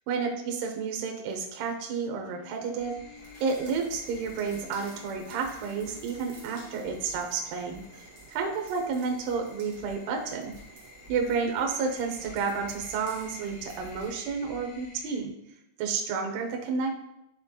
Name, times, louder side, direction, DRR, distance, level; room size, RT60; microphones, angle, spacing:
voice 1, 0.1-3.0 3.4-10.5 11.1-15.3 15.8-16.9, right 5 dB, 75° right, 3 dB, 2.7 m, -31 dB
sound 1, 2.0-7.2, left 4 dB, 40° left, 2.7 m, -51 dB
sound 2, 2.8-15.2, left 2 dB, 75° left, 4.2 m, -50 dB
sound 3, 3.1-14.2, right 3 dB, 55° right, 2.2 m, -53 dB
11.0 x 4.2 x 3.0 m, 0.84 s
omnidirectional pair, 5.5 m